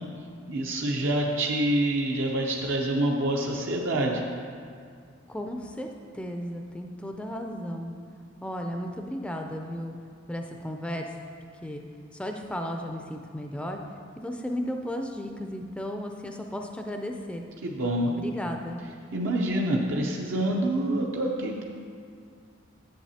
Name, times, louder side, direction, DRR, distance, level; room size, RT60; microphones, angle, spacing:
voice 1, 0.5-4.2 17.6-18.1 19.1-21.6, right 1 dB, 75° right, -1 dB, 0.6 m, -26 dB
voice 2, 5.3-5.9 6.1-7.9 8.4-10.0 10.3-11.1 11.6-11.8 12.1-13.8 14.2-17.4 18.1-18.8, equal, 5° left, 3 dB, 0.3 m, -34 dB
10.5 x 7.5 x 2.8 m, 2.2 s
head